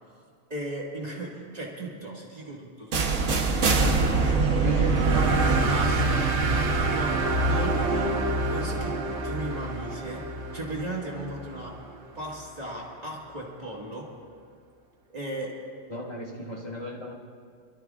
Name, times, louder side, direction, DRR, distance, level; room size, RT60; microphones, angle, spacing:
voice 1, 0.5-11.8 12.1-14.1 15.1-15.5, right 1 dB, 30° right, -4 dB, 1.9 m, -36 dB
sound 1, 2.9-8.7, right 4 dB, 85° right, 1.4 m, -25 dB
voice 2, 4.5-5.0 15.9-17.1, left 1 dB, 35° left, -5 dB, 1.8 m, -37 dB
sound 2, 4.9-12.0, right 2 dB, 65° right, 1.2 m, -27 dB
26.0 x 12.5 x 2.4 m, 2.2 s
omnidirectional pair, 1.3 m